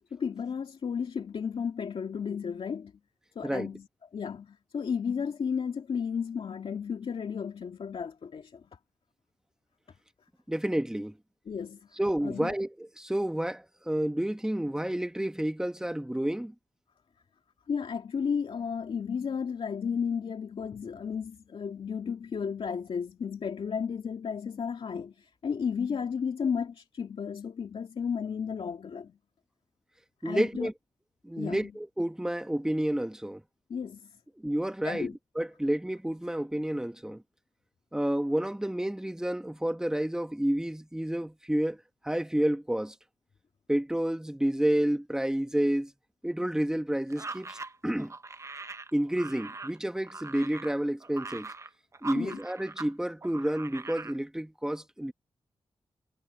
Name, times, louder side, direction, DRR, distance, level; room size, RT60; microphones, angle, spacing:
voice 1, 0.0-2.9 3.4-3.9 4.1-8.7 11.5-11.8 12.2-12.6 17.7-29.1 30.2-30.7 31.4-31.7 33.7-34.1 34.8-35.2 52.2-52.4, left 6 dB, 75° left, 2.3 m, -33 dB
voice 2, 10.5-11.1 12.0-16.5 30.2-30.7 31.2-33.4 34.4-35.1 35.3-37.2 37.9-41.8 42.0-42.9 43.7-45.9 46.2-48.1 48.9-51.5 52.0-55.1, right 1 dB, 5° right, 1.4 m, -30 dB
sound 1, 47.1-52.9 53.2-54.2, right 3 dB, 30° right, 0.8 m, -42 dB
wide cardioid pair, 85°, 10 cm